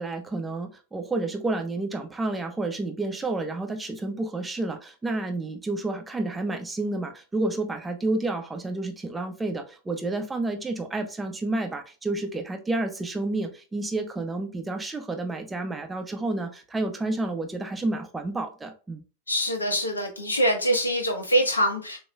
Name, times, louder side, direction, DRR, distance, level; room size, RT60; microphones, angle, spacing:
voice 1, 0.0-19.0, right 2 dB, 10° right, 4 dB, 0.9 m, -30 dB
voice 2, 19.3-22.0, equal, 80° left, 3 dB, 1.4 m, -24 dB
6.9 x 3.0 x 2.3 m, 0.34 s
figure-of-eight pair, 90°, 0 cm